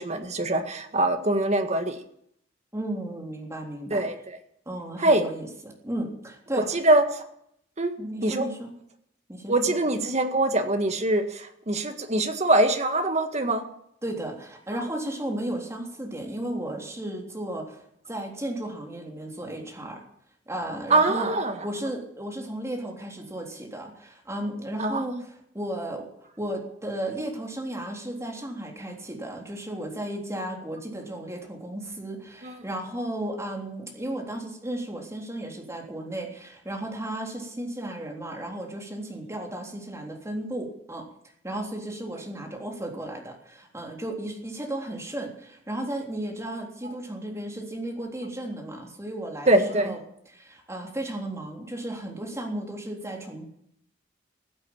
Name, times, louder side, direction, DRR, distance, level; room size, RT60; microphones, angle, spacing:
voice 1, 0.0-2.0 3.9-4.4 5.0-5.2 6.5-7.2 7.8-7.9 8.2-8.5 9.5-13.6 20.9-21.6 24.8-25.2 32.4-32.6 49.5-50.0, right 2 dB, 35° right, 7 dB, 1.8 m, -23 dB
voice 2, 2.7-4.0 4.7-6.8 8.0-8.7 9.3-9.7 14.0-20.0 20.5-21.3 21.6-25.2 25.5-26.1 26.4-41.1 41.4-50.0 50.3-53.4, right 1 dB, 15° right, 1 dB, 3.5 m, -34 dB
15.5 x 8.9 x 8.8 m, 0.70 s
head